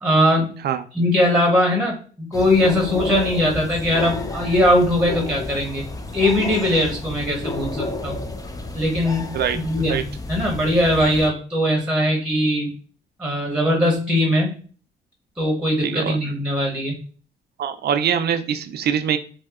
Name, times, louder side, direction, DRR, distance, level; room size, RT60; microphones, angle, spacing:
voice 1, 0.0-0.5 0.9-5.8 6.1-8.2 8.7-10.0 10.3-12.7 13.2-14.5 15.4-16.9, left 1 dB, 5° right, 1 dB, 1.0 m, -20 dB
sound 1, 2.3-11.3, left 2 dB, 20° left, 0.4 m, -31 dB
voice 2, 15.8-16.2 17.6-19.2, right 8 dB, 55° right, 9 dB, 0.4 m, -23 dB
2.7 x 2.1 x 3.5 m, 0.40 s
cardioid pair, 90°, 20 cm